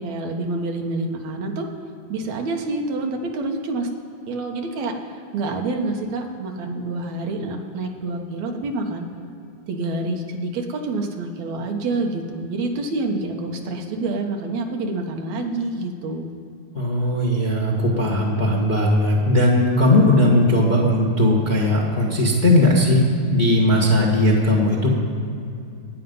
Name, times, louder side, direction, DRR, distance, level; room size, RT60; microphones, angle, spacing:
voice 1, 0.0-1.7 2.1-3.9 4.3-9.1 9.7-16.3, right 2 dB, 65° right, 3 dB, 2.2 m, -27 dB
voice 2, 16.7-23.0 23.3-24.9, left 1 dB, 60° left, -2 dB, 0.4 m, -18 dB
22.5 x 9.3 x 5.5 m, 2.6 s
omnidirectional pair, 3.8 m